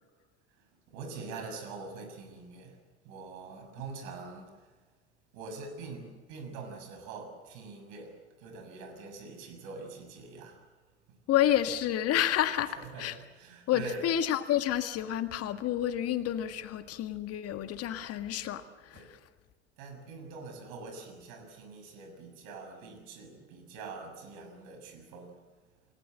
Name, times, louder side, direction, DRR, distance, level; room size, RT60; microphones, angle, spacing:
voice 1, 0.6-2.8 3.0-4.5 5.3-10.6 12.8-14.1 18.9-19.1 19.8-25.3, right 4 dB, 60° right, 6 dB, 6.7 m, -44 dB
voice 2, 11.3-12.7 13.0-13.2 13.7-19.2, left 11 dB, 45° left, 9 dB, 1.7 m, -29 dB
29.0 x 19.0 x 7.8 m, 1.3 s
figure-of-eight pair, 75°, 34 cm